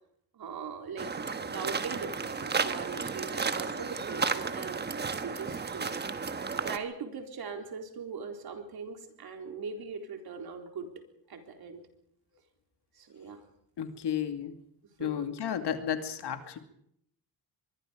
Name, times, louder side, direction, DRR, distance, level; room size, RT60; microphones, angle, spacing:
voice 1, 0.3-5.9 6.6-10.9 11.3-11.8 12.9-13.4 15.0-15.3, right 5 dB, 55° right, 4 dB, 4.1 m, -41 dB
sound 1, 1.0-6.8, right 5 dB, 25° right, 1.2 m, -33 dB
voice 2, 13.8-14.6 15.0-16.6, left 9 dB, 65° left, 7 dB, 2.6 m, -33 dB
24.5 x 22.5 x 5.2 m, 0.71 s
cardioid pair, 165°, 43 cm